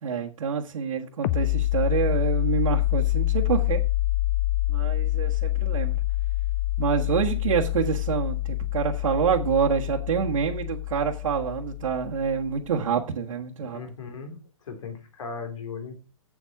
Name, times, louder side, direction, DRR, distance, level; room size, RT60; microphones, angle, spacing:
voice 1, 0.0-3.8 4.7-6.0 6.8-13.8, right 7 dB, 75° right, 1.5 m, -27 dB
sound 1, 1.2-12.6, left 16 dB, 20° left, 0.4 m, -26 dB
voice 2, 13.7-16.0, left 5 dB, 65° left, 3.2 m, -38 dB
8.1 x 7.4 x 5.9 m
hypercardioid pair, 160°, 17 cm